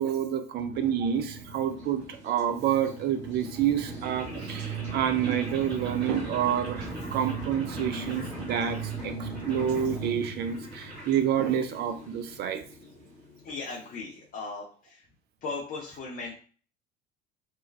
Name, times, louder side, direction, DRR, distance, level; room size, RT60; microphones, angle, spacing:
voice 1, 0.0-12.6, right 9 dB, 30° right, 8 dB, 0.4 m, -28 dB
sound 1, 0.6-11.6, right 4 dB, 5° right, 0.9 m, -38 dB
sound 2, 1.0-14.4, equal, 75° right, 1.2 m, -46 dB
voice 2, 13.4-15.0 15.4-16.4, left 3 dB, 25° left, -2 dB, 0.6 m, -37 dB
3.1 x 2.2 x 2.3 m, 0.41 s
figure-of-eight pair, 70°, 33 cm